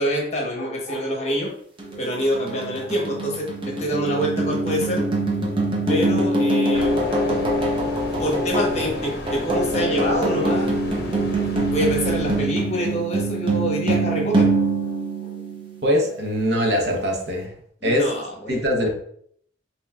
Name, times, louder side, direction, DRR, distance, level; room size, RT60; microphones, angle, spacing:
voice 1, 0.0-1.5 2.0-5.0 5.9-10.7 11.7-15.0 15.2-15.4 17.8-18.6, equal, 35° left, -1 dB, 1.0 m, -26 dB
sound 1, 1.8-16.0, right 2 dB, 25° right, 0.7 m, -24 dB
sound 2, 6.7-12.5, left 1 dB, 55° left, 0.7 m, -34 dB
voice 2, 15.8-17.5 17.8-18.1 18.5-18.9, equal, 60° right, 1 dB, 0.8 m, -22 dB
5.4 x 2.9 x 2.3 m, 0.64 s
head